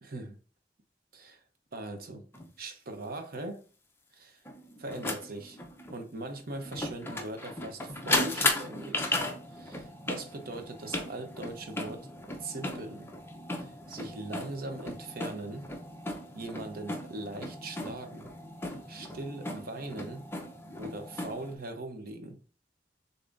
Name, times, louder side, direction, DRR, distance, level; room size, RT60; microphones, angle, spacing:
voice 1, 0.0-0.4 1.1-1.4 1.7-2.3 2.6-3.7 4.1-4.4 4.8-5.6 5.9-9.2 9.5-12.1 12.4-13.1 13.6-15.7 16.3-18.3 18.9-20.3 20.7-22.4, right 2 dB, 60° right, 0.8 m, -40 dB
sound 1, 2.3-2.5 4.5-21.5, left 2 dB, 15° left, 0.6 m, -36 dB
6.7 x 2.8 x 2.5 m
head